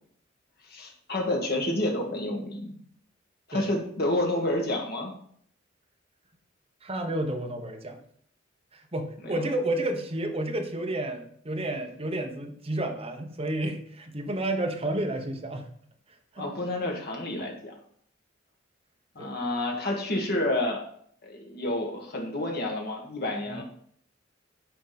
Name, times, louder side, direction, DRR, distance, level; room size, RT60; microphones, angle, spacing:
voice 1, 0.6-2.8 3.5-5.1 9.2-9.4 16.4-17.7 19.2-20.8 21.2-23.6, left 1 dB, 55° left, 0 dB, 1.8 m, -29 dB
voice 2, 6.8-8.0 8.9-15.7 16.3-16.5 19.2-19.3 23.5-23.6, right 1 dB, 30° right, 3 dB, 1.0 m, -31 dB
8.9 x 5.1 x 4.1 m, 0.62 s
head